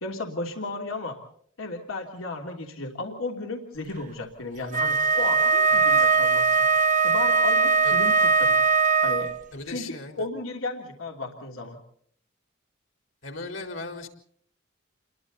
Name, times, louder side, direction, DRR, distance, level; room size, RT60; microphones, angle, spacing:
voice 1, 0.0-1.2 1.6-6.5 7.0-8.6 9.0-9.3 9.7-11.8, left 3 dB, 85° left, 2 dB, 3.1 m, -34 dB
Wind instrument woodwind instrument, 4.7-9.4, right 5 dB, 40° right, 0.8 m, -20 dB
voice 2, 5.7-6.1 7.8-8.1 9.5-10.3 13.2-14.1, left 3 dB, 70° left, 4 dB, 4.2 m, -38 dB
29.5 x 22.0 x 4.1 m, 0.62 s
head